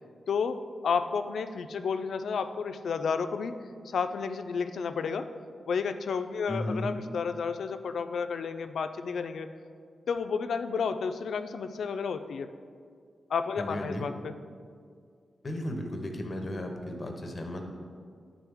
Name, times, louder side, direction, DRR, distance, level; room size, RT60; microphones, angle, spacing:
voice 1, 0.3-3.5 3.8-5.3 5.7-9.5 10.1-12.5 13.3-14.3, left 5 dB, 85° left, 9 dB, 0.3 m, -31 dB
voice 2, 6.5-6.9 13.6-14.1 15.4-17.6, left 1 dB, 30° left, 3 dB, 0.7 m, -34 dB
10.5 x 3.7 x 3.5 m, 2.2 s
wide cardioid pair, 150°, 0 cm